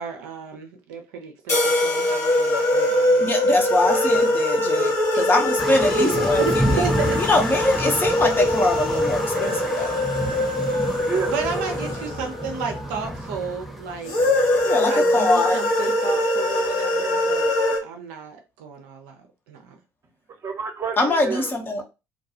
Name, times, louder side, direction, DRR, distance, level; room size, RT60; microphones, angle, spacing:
voice 1, 0.0-3.3 4.3-4.4 4.8-4.9 5.9-6.5 6.8-7.2 11.3-14.2 14.8-17.6 17.8-19.1 19.5-19.8, right 6 dB, 60° right, 0.5 m, -32 dB
sound 1, 1.5-4.1, left 3 dB, 80° left, 0.8 m, -32 dB
sound 2, 1.5-13.3 14.0-17.8, left 1 dB, 50° left, 0.9 m, -22 dB
voice 2, 3.2-6.9 7.2-10.0 14.6-15.6 16.9-17.0 21.0-21.8, left 2 dB, 25° left, 0.7 m, -23 dB
sound 3, 5.6-14.7, equal, ahead, 0.3 m, -30 dB
voice 3, 11.0-11.4 20.4-21.5 21.8-21.9, right 5 dB, 35° right, 0.7 m, -29 dB
2.5 x 2.3 x 2.7 m
figure-of-eight pair, 55°, 8 cm